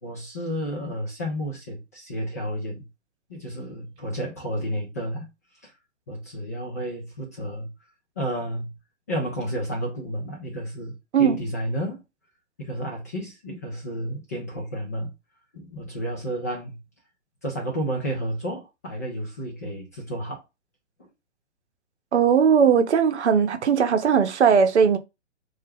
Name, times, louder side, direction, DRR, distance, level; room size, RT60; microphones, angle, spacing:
voice 1, 0.0-2.9 3.3-5.3 5.6-5.7 6.1-7.7 8.2-8.8 9.1-12.0 12.6-15.1 15.5-16.8 17.4-20.4 21.0-21.1, equal, 15° left, 0.3 m, -31 dB
voice 2, 22.1-25.0, right 7 dB, 70° right, 0.7 m, -19 dB
2.3 x 2.0 x 3.4 m
figure-of-eight pair, 125°, 36 cm